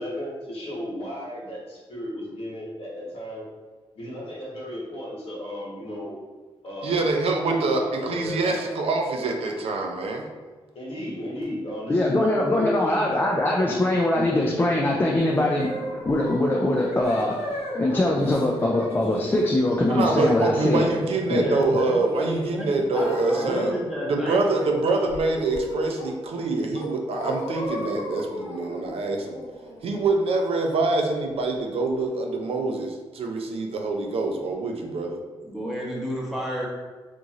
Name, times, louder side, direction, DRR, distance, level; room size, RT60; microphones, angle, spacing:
voice 1, 0.0-3.4 3.9-6.1 6.6-7.0 7.5-8.5 10.7-12.7 21.3-21.5 23.4-23.7, equal, 70° left, -5 dB, 1.1 m, -34 dB
voice 2, 6.8-10.3 19.9-23.7 24.1-29.4 29.8-35.2, right 3 dB, 70° right, 2 dB, 0.4 m, -25 dB
voice 3, 11.9-20.9 21.3-21.4, left 1 dB, 20° left, -2 dB, 0.3 m, -22 dB
sound 1, 15.3-23.8 24.3-24.7 25.0-26.3 26.7-30.5, equal, 90° left, 0.6 m, -35 dB
voice 4, 21.1-22.0 22.5-24.4 35.4-36.7, equal, 5° right, -5 dB, 0.8 m, -32 dB
2.9 x 2.5 x 2.4 m, 1.3 s
cardioid pair, 85°, 10 cm